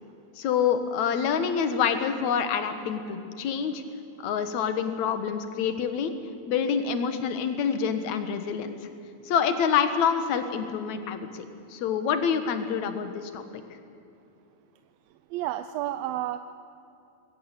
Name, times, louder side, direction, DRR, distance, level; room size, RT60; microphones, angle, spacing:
voice 1, 0.4-3.8 4.2-6.1 6.5-8.7 9.3-11.4 11.7-13.4, left 7 dB, 60° left, 9 dB, 2.4 m, -27 dB
voice 2, 15.3-16.4, right 13 dB, 80° right, 10 dB, 2.3 m, -30 dB
21.5 x 17.0 x 8.4 m, 2.7 s
omnidirectional pair, 4.3 m